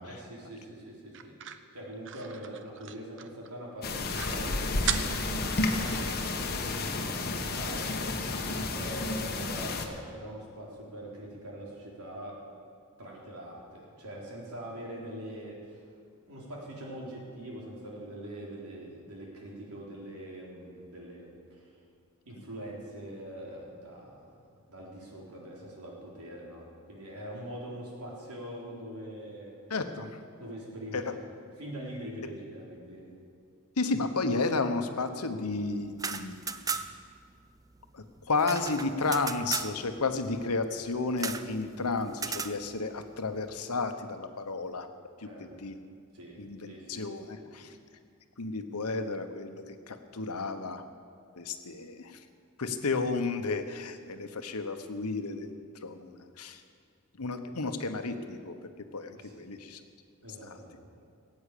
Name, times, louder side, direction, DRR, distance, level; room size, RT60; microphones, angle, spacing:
voice 1, 0.0-1.3 1.7-8.1 8.7-12.3 13.0-15.8 16.3-21.6 22.3-29.5 30.4-31.1 31.6-33.0 45.2-45.6 46.1-46.4 46.7-47.0 47.4-47.5 59.2-59.4 60.2-60.9, right 1 dB, 85° right, -3 dB, 3.9 m, -43 dB
sound 1, 1.1-3.5 3.8-3.9 4.1-4.4 4.9-6.2, right 9 dB, 55° right, 0.7 m, -37 dB
sound 2, 3.8-9.9, left 2 dB, 45° left, 1.2 m, -31 dB
voice 2, 29.7-30.1 30.9-31.0 33.8-36.6 37.9-44.9 45.4-45.8 46.4-47.7 48.4-50.8 51.4-52.1 52.6-55.5 55.8-56.6 57.2-58.6 58.9-59.8 60.4-60.6, left 3 dB, 85° left, 8 dB, 1.1 m, -32 dB
sound 3, 35.9-37.1 37.4-37.5 37.7-39.7 41.2-41.5 42.1-42.6, right 5 dB, 15° right, 0.4 m, -35 dB
16.5 x 8.7 x 8.5 m, 2.2 s
head